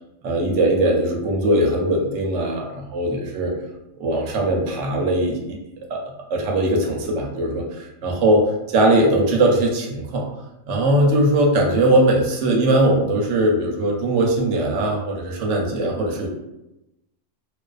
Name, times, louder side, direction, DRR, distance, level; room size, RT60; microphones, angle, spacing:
voice 1, 0.2-3.5 4.0-5.6 5.9-6.0 6.3-10.3 10.7-16.3, right 1 dB, 70° right, 0 dB, 0.9 m, -20 dB
2.4 x 2.4 x 2.3 m, 0.94 s
omnidirectional pair, 1.4 m